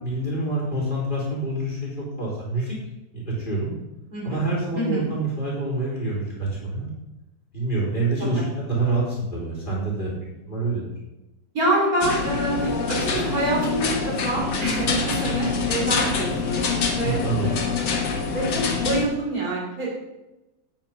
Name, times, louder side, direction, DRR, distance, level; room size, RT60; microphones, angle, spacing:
voice 1, 0.0-2.8 3.1-3.7 4.2-6.9 7.5-10.1 10.5-10.8 17.0-17.5, right 2 dB, 25° left, -6 dB, 4.0 m, -26 dB
voice 2, 4.8-5.1 8.2-8.4 11.5-17.8 18.2-20.0, right 2 dB, 50° right, -4 dB, 3.9 m, -26 dB
sound 1, 12.0-19.0, left 5 dB, 70° left, 2.0 m, -25 dB
9.4 x 8.7 x 5.3 m, 0.99 s
omnidirectional pair, 1.9 m